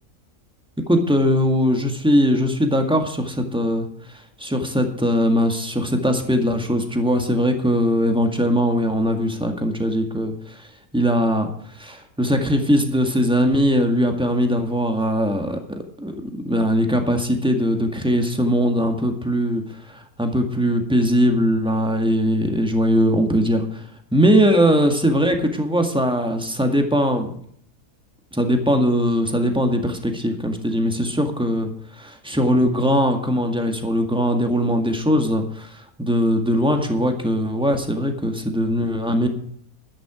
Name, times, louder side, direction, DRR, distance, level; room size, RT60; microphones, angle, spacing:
voice 1, 0.9-3.9 4.4-10.3 10.9-11.5 11.8-15.6 16.0-19.6 20.2-23.8 24.1-27.3 28.3-31.7 32.0-35.7 36.0-39.3, equal, 5° right, 4 dB, 1.8 m, -20 dB
13.0 x 10.0 x 5.0 m, 0.64 s
omnidirectional pair, 1.7 m